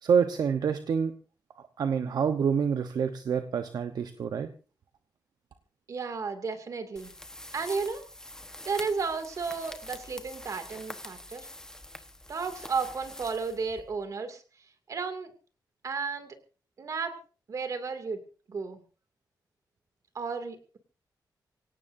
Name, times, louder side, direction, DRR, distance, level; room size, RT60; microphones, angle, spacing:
voice 1, 0.0-1.1 1.8-4.5, right 6 dB, 65° right, 8 dB, 1.0 m, -27 dB
voice 2, 5.9-7.1 7.5-8.0 8.6-11.5 12.3-14.4 14.9-15.3 15.8-16.4 16.8-17.1 17.5-18.2 18.5-18.8 20.1-20.8, right 5 dB, 50° right, 7 dB, 2.4 m, -33 dB
sound 1, 7.0-14.1, left 1 dB, 10° left, 1.2 m, -45 dB
25.0 x 17.5 x 2.7 m, 0.37 s
wide cardioid pair, 180°, 7 cm